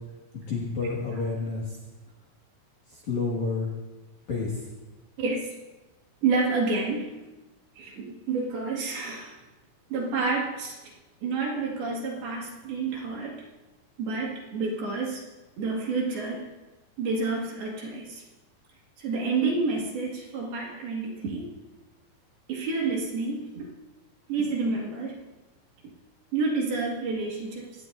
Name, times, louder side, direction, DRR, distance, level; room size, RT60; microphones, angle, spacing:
voice 1, 0.3-1.8 2.9-3.7 4.3-4.7, left 4 dB, 50° left, -2 dB, 2.3 m, -30 dB
voice 2, 5.2-5.5 6.2-7.1 7.8-9.3 9.9-10.8 11.2-13.4 14.0-15.2 15.6-16.5 17.0-18.2 19.0-21.5 22.5-23.7 24.3-25.2 26.3-27.7, right 4 dB, 55° right, -2 dB, 3.4 m, -29 dB
24.0 x 17.5 x 2.7 m, 1.1 s
omnidirectional pair, 6.0 m